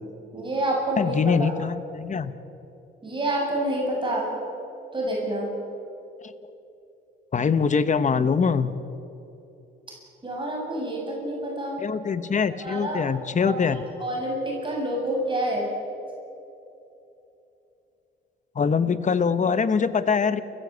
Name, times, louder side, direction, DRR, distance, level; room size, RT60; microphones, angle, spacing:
voice 1, 0.0-1.6 3.0-4.2 4.9-5.5 10.2-11.8 12.6-13.0 13.4-15.7, right 1 dB, 25° right, -2 dB, 7.7 m, -28 dB
voice 2, 1.0-2.3 6.2-6.3 7.3-8.7 11.8-13.8 18.5-20.4, left 5 dB, 40° left, 13 dB, 1.4 m, -23 dB
29.5 x 15.0 x 8.4 m, 2.9 s
cardioid pair, 90°, 20 cm